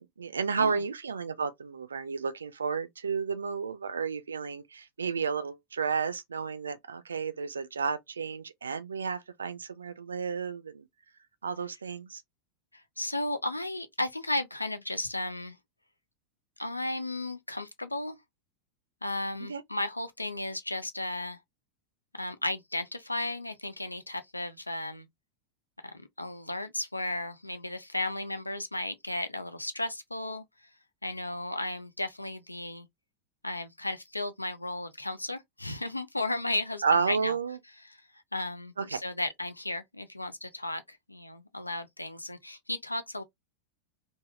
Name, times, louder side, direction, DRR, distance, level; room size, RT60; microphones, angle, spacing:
voice 1, 0.2-10.9 11.4-12.2 19.5-19.6 36.8-37.6 38.8-39.0, right 5 dB, 70° right, 0.4 m, -32 dB
voice 2, 12.7-15.6 16.6-18.2 19.0-21.4 22.1-25.1 25.8-30.4 31.0-32.9 33.4-37.3 37.9-38.0 38.3-43.2, left 2 dB, 85° left, 0.4 m, -34 dB
3.4 x 2.0 x 2.4 m
figure-of-eight pair, 90°, 0 cm